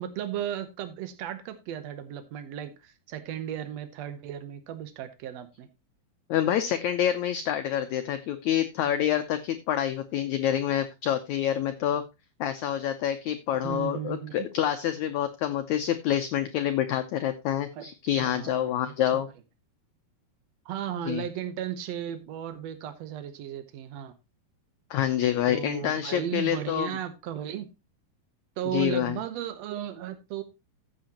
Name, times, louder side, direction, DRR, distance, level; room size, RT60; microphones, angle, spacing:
voice 1, 0.0-5.7 13.6-14.5 17.7-19.2 20.6-24.1 25.5-27.7 28.6-30.4, right 10 dB, 85° right, 1.4 m, -35 dB
voice 2, 6.3-12.0 12.4-19.3 21.0-21.2 24.9-27.0 28.7-29.2, left 11 dB, 85° left, 1.6 m, -27 dB
14.0 x 7.8 x 2.9 m
omnidirectional pair, 4.3 m